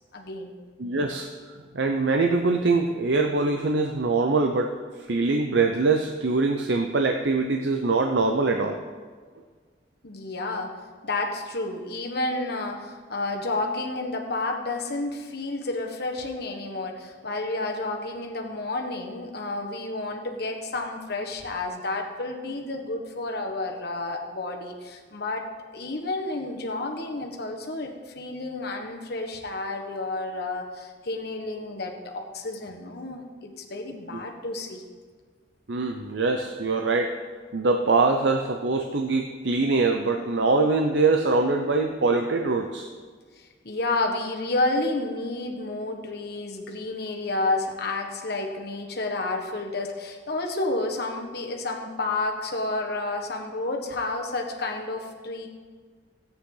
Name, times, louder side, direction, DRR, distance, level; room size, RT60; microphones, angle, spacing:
voice 1, 0.1-0.5 10.0-10.7 11.0-25.5 25.7-34.8 43.6-55.5, left 2 dB, 60° left, 2 dB, 1.4 m, -30 dB
voice 2, 0.8-4.7 5.1-8.8 34.1-34.2 35.7-37.2 37.5-42.9, right 3 dB, 75° right, 3 dB, 0.7 m, -23 dB
14.0 x 9.1 x 3.9 m, 1.6 s
head